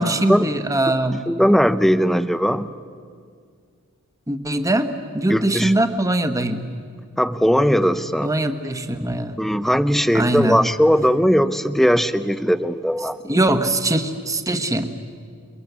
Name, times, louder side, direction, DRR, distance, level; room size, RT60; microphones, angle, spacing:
voice 1, 0.0-1.2 4.3-6.7 8.2-9.4 10.1-10.6 13.2-14.9, right 1 dB, 15° right, 7 dB, 1.4 m, -21 dB
voice 2, 1.3-2.7 5.3-5.7 7.2-8.3 9.4-13.2, equal, ahead, 12 dB, 0.7 m, -18 dB
28.5 x 22.5 x 8.3 m, 2.1 s
head